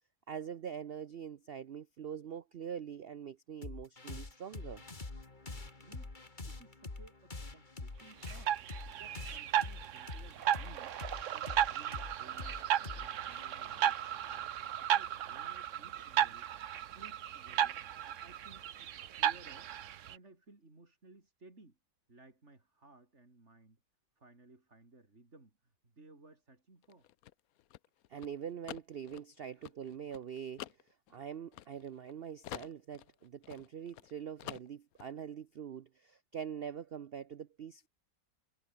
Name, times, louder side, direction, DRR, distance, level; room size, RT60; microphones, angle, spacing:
voice 1, 0.3-4.8 28.1-37.9, right 8 dB, 75° right, 0.5 m, -44 dB
sound 1, 3.6-14.7, left 3 dB, 25° left, 2.4 m, -46 dB
voice 2, 5.7-6.1 6.4-8.6 9.0-11.0 11.3-14.1 14.7-16.5 16.7-17.8 18.1-19.7 20.1-21.8 22.1-23.8 24.2-27.1 29.5-29.7, right 2 dB, 40° right, 4.4 m, -59 dB
sound 2, 8.3-20.2, right 10 dB, 55° right, 0.9 m, -35 dB
sound 3, 26.8-32.1 32.4-34.1 34.4-35.1, left 13 dB, 65° left, 1.0 m, -48 dB
omnidirectional pair, 1.8 m